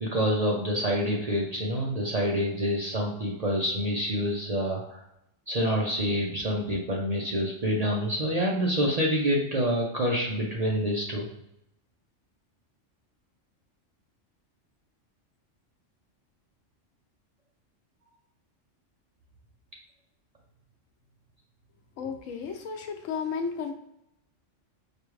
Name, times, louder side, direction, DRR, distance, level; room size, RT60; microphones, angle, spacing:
voice 1, 0.0-5.0 5.5-11.3, equal, 45° right, -2 dB, 0.5 m, -27 dB
voice 2, 22.0-23.7, left 5 dB, 85° left, 5 dB, 1.0 m, -33 dB
4.9 x 2.3 x 3.1 m, 0.81 s
omnidirectional pair, 1.3 m